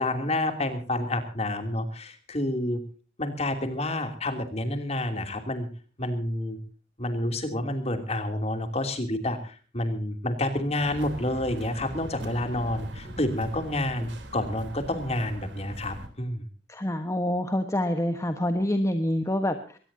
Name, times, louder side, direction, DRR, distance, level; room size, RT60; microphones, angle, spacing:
voice 1, 0.0-2.8 3.2-5.7 6.0-6.6 7.0-16.4, left 1 dB, 35° left, 6 dB, 3.0 m, -29 dB
sound 1, 10.8-16.1, right 1 dB, 75° right, 3.6 m, -41 dB
voice 2, 16.7-19.8, left 1 dB, 15° left, 6 dB, 1.2 m, -26 dB
22.5 x 19.0 x 2.8 m, 0.38 s
head